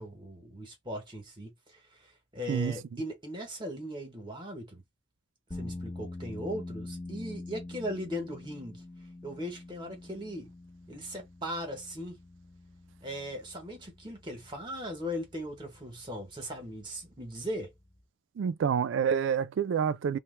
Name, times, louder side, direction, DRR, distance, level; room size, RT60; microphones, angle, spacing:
voice 1, 0.0-4.8 5.5-8.8 9.2-10.5 10.9-12.2 13.0-17.7, equal, 25° right, 1.0 m, -38 dB
sound 1, 5.5-18.0, left 2 dB, 20° left, 1.0 m, -46 dB
voice 2, 18.4-20.2, right 7 dB, 80° right, 0.3 m, -28 dB
3.0 x 2.1 x 3.2 m
head